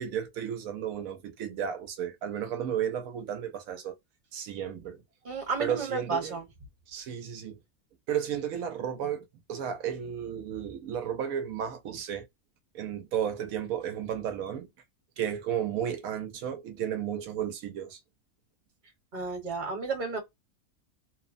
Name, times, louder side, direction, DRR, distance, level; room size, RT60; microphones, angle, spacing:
voice 1, 0.0-3.9 4.3-5.0 5.6-6.4 6.9-7.6 8.1-12.3 12.7-14.7 15.2-18.0, right 9 dB, 85° right, 1.0 m, -33 dB
voice 2, 5.2-6.5 19.1-20.2, right 4 dB, 35° right, 1.1 m, -32 dB
3.0 x 2.1 x 2.5 m
omnidirectional pair, 1.4 m